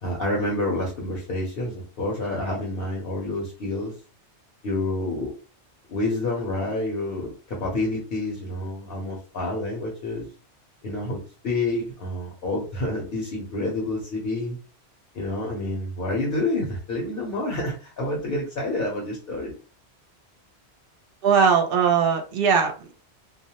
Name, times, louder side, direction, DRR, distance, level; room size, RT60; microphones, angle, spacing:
voice 1, 0.0-3.9 4.6-5.3 5.9-10.3 10.8-14.6 15.1-19.6, left 2 dB, 60° left, -1 dB, 0.9 m, -28 dB
voice 2, 21.2-22.9, right 6 dB, 65° right, 4 dB, 0.7 m, -20 dB
2.3 x 2.0 x 2.8 m, 0.36 s
omnidirectional pair, 1.1 m